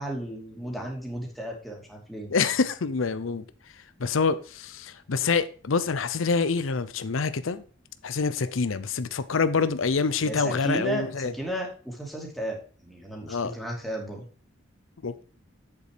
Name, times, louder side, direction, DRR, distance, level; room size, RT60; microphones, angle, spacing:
voice 1, 0.0-2.4 10.2-14.2, right 1 dB, ahead, -1 dB, 2.6 m, -34 dB
voice 2, 2.3-3.4 4.0-7.6 8.0-11.3 13.3-13.5 15.0-15.2, left 4 dB, 90° left, 13 dB, 0.6 m, -26 dB
8.2 x 7.0 x 4.9 m, 0.41 s
head